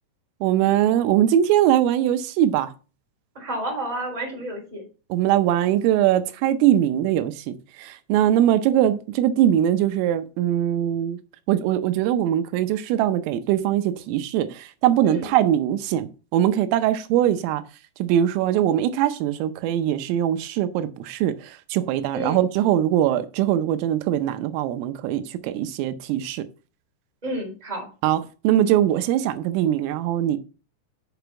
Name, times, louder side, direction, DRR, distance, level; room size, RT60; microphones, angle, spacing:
voice 1, 0.4-2.7 5.1-11.2 11.5-17.6 18.0-26.4 28.0-28.2 28.4-30.4, right 11 dB, 85° right, 3.3 m, -21 dB
voice 2, 3.3-4.8 15.0-15.3 22.1-22.4 27.2-27.9, right 1 dB, 10° right, 2.7 m, -30 dB
7.1 x 6.9 x 4.5 m
omnidirectional pair, 5.8 m